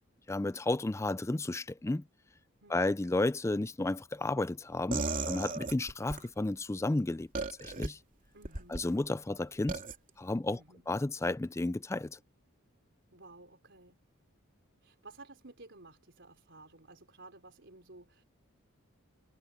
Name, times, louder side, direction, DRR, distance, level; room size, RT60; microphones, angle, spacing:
voice 1, 0.3-2.0 2.7-7.3 7.6-8.0 8.7-9.8 10.2-10.6 10.9-12.2, left 2 dB, 15° left, 0.4 m, -32 dB
voice 2, 2.6-2.9 8.3-8.8 10.5-10.9 13.1-14.0 14.8-18.2, right 2 dB, 55° right, 4.5 m, -54 dB
sound 1, 4.9-6.3 7.3-7.9 8.4-8.8 9.7-10.0, right 3 dB, 40° right, 3.0 m, -35 dB
head